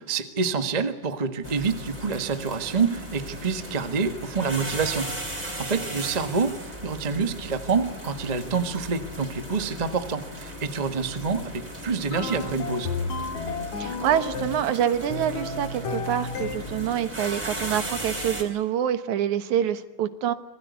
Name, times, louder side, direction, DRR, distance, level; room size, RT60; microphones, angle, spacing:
voice 1, 0.0-12.9, right 5 dB, 45° right, 8 dB, 0.5 m, -27 dB
sound 1, 1.4-18.4, equal, 10° right, 3.7 m, -37 dB
sound 2, 12.1-14.7 15.1-17.0, left 4 dB, 65° left, 3.5 m, -32 dB
voice 2, 13.8-20.3, right 10 dB, 70° right, 11 dB, 2.5 m, -26 dB
26.5 x 21.0 x 9.6 m, 0.94 s
omnidirectional pair, 3.7 m